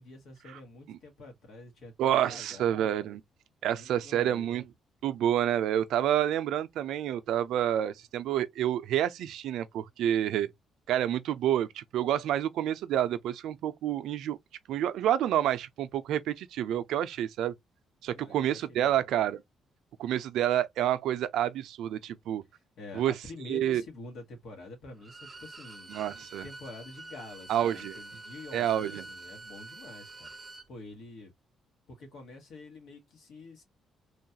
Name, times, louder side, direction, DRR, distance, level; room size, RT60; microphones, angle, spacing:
voice 1, 0.0-2.7 3.7-4.6 18.1-19.0 22.5-26.1 26.4-31.3 31.9-33.6, left 2 dB, 75° left, 1.3 m, -47 dB
voice 2, 2.0-3.2 3.6-4.6 5.0-10.5 10.9-14.4 14.7-17.5 18.0-19.4 20.0-22.4 22.9-23.1 23.5-23.8 25.9-26.4 27.5-28.0 28.5-29.0, right 11 dB, 80° right, 0.4 m, -28 dB
Bowed string instrument, 25.0-30.7, right 2 dB, 25° right, 0.5 m, -46 dB
3.1 x 2.3 x 2.7 m
cardioid pair, 90°, 0 cm